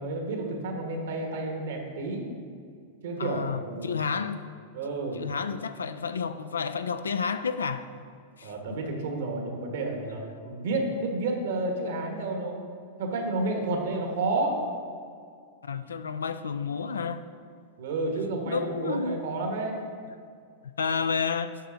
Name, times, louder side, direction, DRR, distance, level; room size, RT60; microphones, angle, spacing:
voice 1, 0.0-2.3 3.0-4.0 4.7-5.2 8.4-12.6 13.0-14.6 17.8-19.8, right 2 dB, 70° right, 1.5 m, -30 dB
voice 2, 3.2-4.4 5.1-7.9 8.4-8.8 15.6-17.2 18.5-19.2 20.6-21.6, left 6 dB, 90° left, 0.4 m, -31 dB
9.3 x 5.7 x 3.9 m
hypercardioid pair, 105°, 0 cm